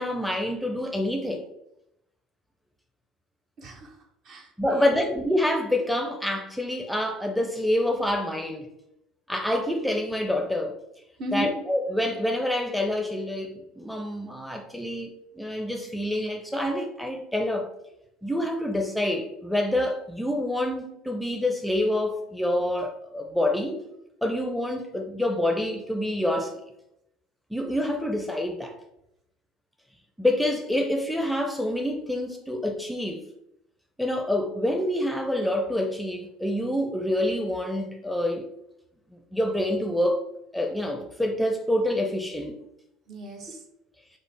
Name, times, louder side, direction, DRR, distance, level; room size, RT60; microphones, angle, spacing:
voice 1, 0.0-1.4 4.6-8.7 9.3-10.8 11.3-17.7 18.2-23.8 24.2-26.6 27.5-28.7 30.2-33.2 34.0-38.5 39.3-40.2 40.5-42.6, left 1 dB, ahead, 3 dB, 0.5 m, -27 dB
voice 2, 3.6-4.0 4.2-5.0 11.2-11.6 43.1-43.6, equal, 50° right, 2 dB, 0.8 m, -34 dB
4.9 x 2.1 x 3.3 m, 0.81 s
figure-of-eight pair, 65°, 0 cm